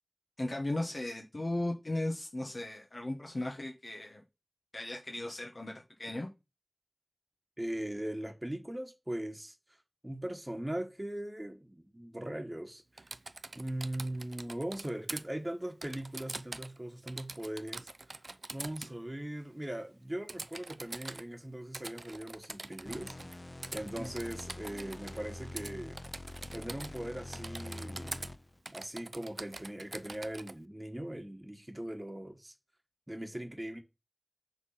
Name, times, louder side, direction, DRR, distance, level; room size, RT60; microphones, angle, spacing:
voice 1, 0.4-4.2 4.7-6.3 24.0-24.1, left 1 dB, 70° left, 1.2 m, -36 dB
voice 2, 7.6-9.5 10.0-13.1 13.5-18.2 18.5-23.4 23.7-26.0 26.5-28.2 28.7-32.5 33.1-33.8, right 1 dB, 25° right, 1.1 m, -40 dB
Typing, 13.0-15.2 15.8-16.8 17.1-18.9 20.3-21.2 21.7-23.4 23.6-25.2 25.6-25.7 26.0-27.0 27.3-28.3 28.7-30.5, right 3 dB, 90° right, 0.4 m, -44 dB
sound 1, 22.9-28.6, left 2 dB, 50° left, 0.5 m, -45 dB
6.1 x 3.6 x 5.6 m
wide cardioid pair, 45°, 0 cm